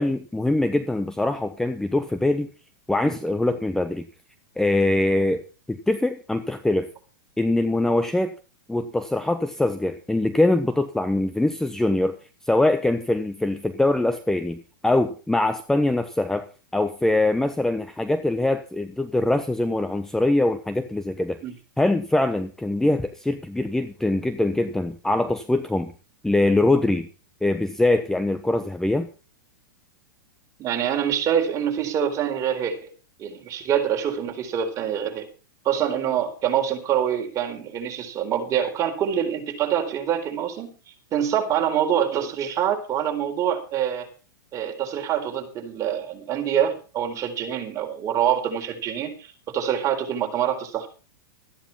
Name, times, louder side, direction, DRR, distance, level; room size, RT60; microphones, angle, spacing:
voice 1, 0.0-2.5 2.9-4.1 4.6-5.4 5.7-6.9 7.4-8.3 8.7-12.2 12.5-16.5 16.7-21.4 21.8-25.9 26.2-27.1 27.4-29.1, left 2 dB, 5° left, 9 dB, 1.1 m, -23 dB
voice 2, 30.6-32.9 33.2-35.3 35.6-40.8 41.1-44.1 44.5-50.9, right 9 dB, 30° right, 4 dB, 4.2 m, -25 dB
14.0 x 10.0 x 5.8 m, 0.35 s
hypercardioid pair, 115°, 11 cm